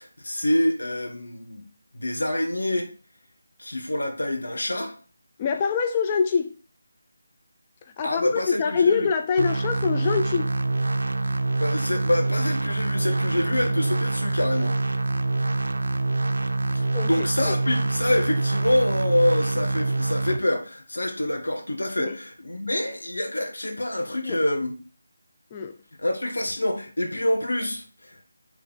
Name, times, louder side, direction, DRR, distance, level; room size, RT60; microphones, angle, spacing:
voice 1, 0.0-1.6 1.9-2.9 3.6-4.9 8.0-9.1 11.6-14.8 16.7-24.7 26.0-28.2, left 1 dB, 75° left, 1.6 m, -26 dB
voice 2, 5.4-6.6 8.0-10.5 16.9-17.6 22.0-22.1 24.2-24.4 25.5-25.7, left 5 dB, 25° left, 0.3 m, -25 dB
sound 1, 9.4-20.4, right 2 dB, 65° right, 0.4 m, -25 dB
5.3 x 3.4 x 5.4 m
figure-of-eight pair, 160°, 0 cm